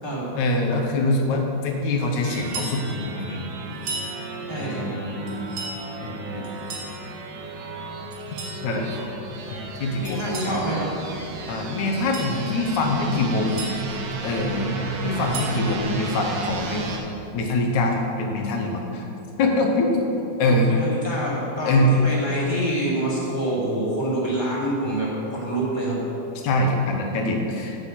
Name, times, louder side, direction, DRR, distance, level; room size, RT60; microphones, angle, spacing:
voice 1, 0.4-3.6 4.5-5.4 6.0-6.5 8.6-9.1 9.5-10.6 11.5-13.6 14.2-14.7 15.0-16.9 17.3-19.1 19.4-20.0 20.4-20.7 21.6-21.9 26.4-27.8, left 2 dB, 70° left, 2 dB, 1.8 m, -24 dB
sound 1, 2.2-17.0, right 3 dB, 65° right, 2.4 m, -33 dB
sound 2, 2.3-2.8 3.7-4.1 5.3-5.8 6.4-6.9 8.1-8.6 10.0-10.6 11.9-12.3 13.2-13.7 15.0-15.6, right 3 dB, 45° right, 2.0 m, -35 dB
voice 2, 4.5-5.1 9.9-10.9 20.4-26.0, right 1 dB, 10° left, -7 dB, 1.3 m, -27 dB
10.5 x 5.8 x 8.1 m, 2.9 s
omnidirectional pair, 4.6 m